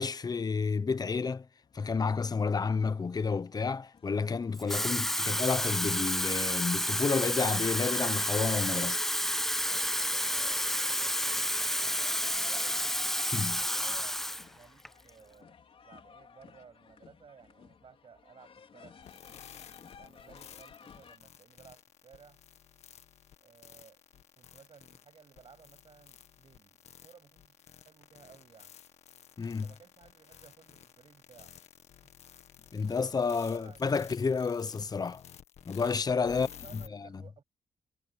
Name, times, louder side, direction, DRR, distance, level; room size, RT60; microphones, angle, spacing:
voice 1, 0.0-1.5 1.7-9.0 13.2-13.6 29.4-29.7 32.7-35.2 35.7-36.5 36.7-37.2, left 5 dB, 35° left, 1.0 m, -30 dB
sound 1, 1.6-21.2, left 6 dB, 60° left, 4.8 m, -59 dB
Water tap faucet / Fill (with liquid), 4.5-14.5 14.8-15.1, equal, 5° left, 0.8 m, -30 dB
voice 2, 9.6-12.8 13.1-13.2 13.6-14.2 14.5-15.6 15.8-19.3 20.0-22.4 23.4-28.7 29.6-31.5 32.0-32.1 32.9-33.8 36.2-37.4, right 6 dB, 55° right, 7.3 m, -57 dB
sound 2, 19.0-36.9, left 9 dB, 85° left, 1.7 m, -53 dB
cardioid pair, 85°, 11 cm